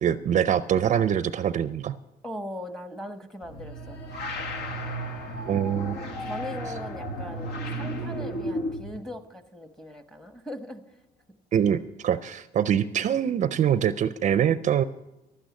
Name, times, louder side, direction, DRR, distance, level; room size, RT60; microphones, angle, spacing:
voice 1, 0.0-1.9 5.4-6.0 11.5-14.8, right 9 dB, 45° right, 13 dB, 0.5 m, -24 dB
voice 2, 2.2-4.0 5.6-10.8, left 1 dB, 5° left, 8 dB, 1.0 m, -39 dB
sound 1, 3.4-9.0, equal, 75° left, 1.6 m, -33 dB
12.0 x 9.0 x 8.3 m, 0.95 s
cardioid pair, 110°, 17 cm